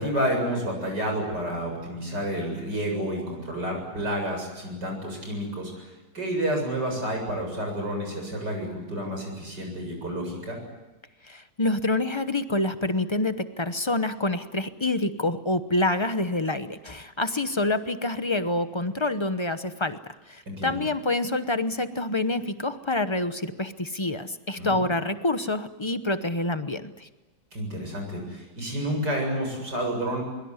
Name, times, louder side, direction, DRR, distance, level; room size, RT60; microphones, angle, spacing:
voice 1, 0.0-5.8 6.1-10.6 20.5-20.7 24.6-24.8 27.5-30.2, equal, 65° right, 2 dB, 8.2 m, -30 dB
voice 2, 11.2-20.0 20.3-27.1, left 2 dB, 25° left, 10 dB, 0.6 m, -27 dB
23.5 x 22.5 x 9.7 m, 1.1 s
omnidirectional pair, 2.0 m